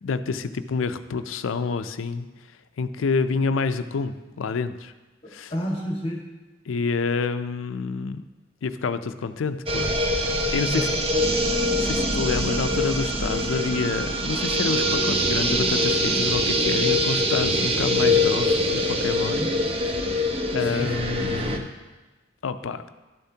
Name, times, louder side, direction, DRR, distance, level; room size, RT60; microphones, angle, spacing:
voice 1, 0.0-2.3 2.8-4.9 5.3-5.5 6.7-8.2 8.6-10.0 10.3-10.9 11.8-19.4 20.5-21.6 22.4-22.9, left 4 dB, 90° left, 11 dB, 0.4 m, -28 dB
voice 2, 5.5-6.2 10.4-11.4 19.1-19.5 20.6-21.6, equal, 30° left, -2 dB, 1.6 m, -32 dB
sound 1, 9.7-21.6, left 1 dB, 30° right, 0.6 m, -23 dB
12.0 x 6.9 x 2.8 m, 1.2 s
head